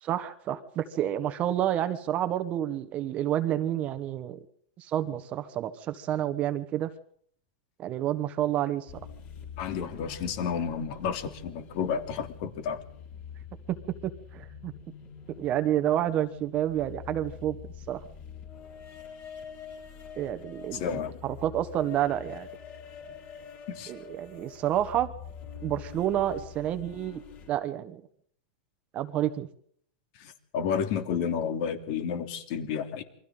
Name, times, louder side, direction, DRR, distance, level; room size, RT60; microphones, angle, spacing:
voice 1, 0.0-4.4 4.8-6.9 7.8-8.9 13.7-13.8 14.0-14.7 15.4-17.6 17.9-18.0 20.2-22.5 23.9-25.1 25.6-27.2 27.5-28.0 28.9-29.5, right 12 dB, 30° right, 10 dB, 1.3 m, -29 dB
sound 1, 8.9-27.5, left 7 dB, 30° left, 4.7 m, -46 dB
voice 2, 9.6-12.8 20.7-21.2 23.7-23.9 30.2-33.0, left 7 dB, 50° left, 6 dB, 3.1 m, -31 dB
28.5 x 23.5 x 3.9 m, 0.62 s
supercardioid pair, 155°, 5 cm